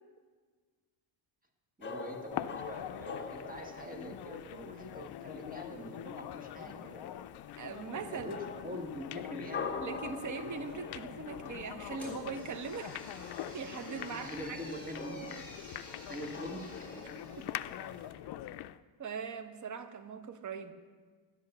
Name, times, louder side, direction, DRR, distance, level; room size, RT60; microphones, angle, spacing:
sound 1, 1.8-18.1, left 4 dB, 25° left, 0.8 m, -46 dB
voice 1, 1.8-7.0 8.1-9.6 14.1-15.2 16.1-16.9, equal, 15° right, 1.4 m, -44 dB
sound 2, 2.3-18.8, left 13 dB, 55° left, 0.5 m, -44 dB
voice 2, 7.6-8.3 9.8-13.0 13.5-14.6 17.4-17.5 19.0-20.7, right 5 dB, 35° right, 0.9 m, -41 dB
sound 3, 11.9-18.1, left 1 dB, 5° left, 4.7 m, -52 dB
11.5 x 10.5 x 6.6 m
cardioid pair, 125°, 49 cm